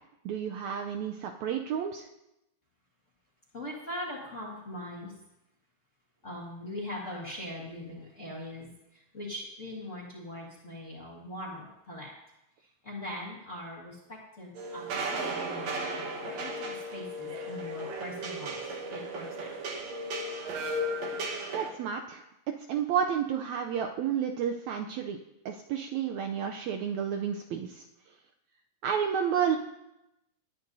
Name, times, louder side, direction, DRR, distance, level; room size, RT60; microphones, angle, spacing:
voice 1, 0.2-2.1 21.5-22.2 22.7-25.2 25.4-27.8 28.8-29.6, right 8 dB, 90° right, 4 dB, 1.6 m, -31 dB
voice 2, 3.5-5.2 6.2-12.1 12.6-15.7 16.2-18.6 18.9-19.6, left 1 dB, 35° left, -4 dB, 1.4 m, -41 dB
sound 1, 14.5-21.7, right 1 dB, 60° right, 2.3 m, -35 dB
19.5 x 9.3 x 2.7 m, 0.88 s
omnidirectional pair, 3.9 m